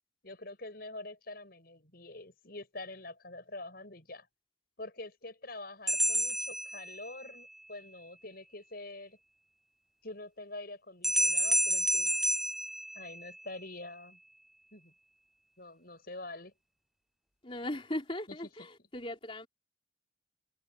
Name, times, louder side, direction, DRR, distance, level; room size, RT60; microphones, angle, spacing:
voice 1, 0.2-4.3 4.8-9.2 10.0-12.3 12.9-14.2 14.7-14.9 15.6-16.5, left 2 dB, 50° left, 6.8 m, -46 dB
sound 1, 5.9-7.4 11.0-13.5, right 1 dB, ahead, 0.4 m, -30 dB
voice 2, 17.4-19.5, left 1 dB, 30° left, 4.0 m, -38 dB
head